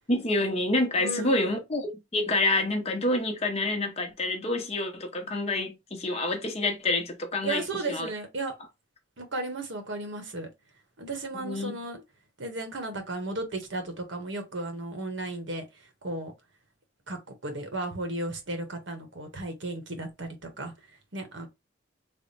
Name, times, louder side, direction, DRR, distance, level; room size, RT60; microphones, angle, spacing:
voice 1, 0.1-7.6 7.9-8.1 11.3-11.8, left 2 dB, 30° left, 0.7 m, -28 dB
voice 2, 1.0-1.6 7.4-8.6 9.2-10.5 11.0-12.0 12.4-16.3 17.1-20.7 21.1-21.5, right 2 dB, 70° right, 1.0 m, -35 dB
3.5 x 2.1 x 4.1 m
head